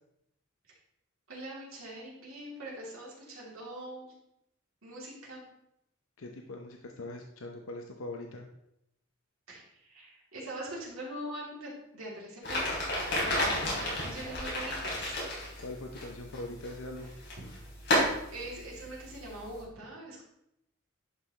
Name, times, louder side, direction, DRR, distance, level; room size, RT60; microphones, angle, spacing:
voice 1, 1.3-4.1 4.8-5.4 9.5-12.7 13.1-15.1 18.3-20.2, right 1 dB, 90° right, -5 dB, 3.2 m, -43 dB
voice 2, 6.2-8.5 13.4-13.8 15.6-17.2, left 2 dB, 75° left, 3 dB, 0.7 m, -42 dB
sound 1, 12.4-19.6, left 1 dB, 55° left, 3.4 m, -33 dB
11.0 x 5.7 x 3.3 m, 0.81 s
head